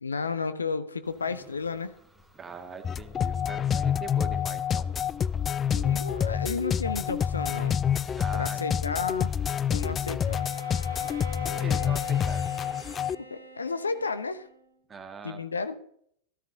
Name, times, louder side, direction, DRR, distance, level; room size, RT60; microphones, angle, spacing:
voice 1, 0.0-2.0 5.7-7.8 8.3-9.3 9.7-10.5 13.3-14.5 15.2-15.8, left 4 dB, 75° left, 12 dB, 0.8 m, -32 dB
sound 1, 1.0-13.0, right 1 dB, ahead, 2.0 m, -54 dB
voice 2, 2.3-5.1 8.1-8.6 11.4-12.5 14.9-15.4, right 5 dB, 20° right, 6 dB, 1.8 m, -42 dB
sound 2, 2.8-13.1, left 8 dB, 25° left, 0.4 m, -28 dB
Bowed string instrument, 10.3-14.7, left 1 dB, 85° right, 1.9 m, -44 dB
14.0 x 13.5 x 3.9 m, 0.67 s
figure-of-eight pair, 90°, 0 cm